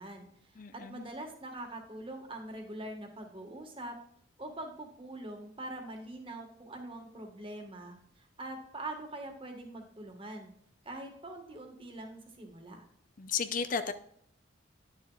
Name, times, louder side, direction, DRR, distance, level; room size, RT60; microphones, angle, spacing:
voice 1, 0.0-4.0 4.4-10.5 10.8-12.8, right 1 dB, 25° right, 3 dB, 1.5 m, -43 dB
voice 2, 0.6-1.1 13.2-13.9, left 6 dB, 45° left, 10 dB, 0.5 m, -34 dB
10.5 x 7.0 x 2.4 m, 0.68 s
head